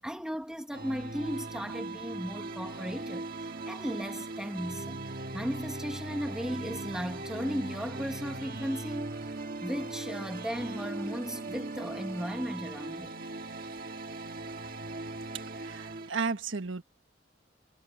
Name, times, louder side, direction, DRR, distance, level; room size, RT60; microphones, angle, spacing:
voice 1, 0.0-5.0 5.3-9.3 9.6-13.1, equal, 5° right, 1.4 m, -36 dB
sound 1, 0.7-16.1, right 2 dB, 50° right, 1.7 m, -39 dB
voice 2, 15.6-16.8, right 4 dB, 85° right, 1.5 m, -33 dB
head